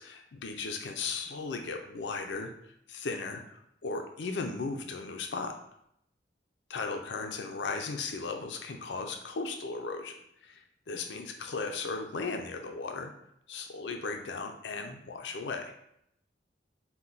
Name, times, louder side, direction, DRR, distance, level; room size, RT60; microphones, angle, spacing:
voice 1, 0.0-5.5 6.7-10.1 10.4-13.1 13.5-15.7, left 4 dB, 85° left, 4 dB, 0.5 m, -36 dB
4.3 x 2.2 x 3.9 m, 0.74 s
head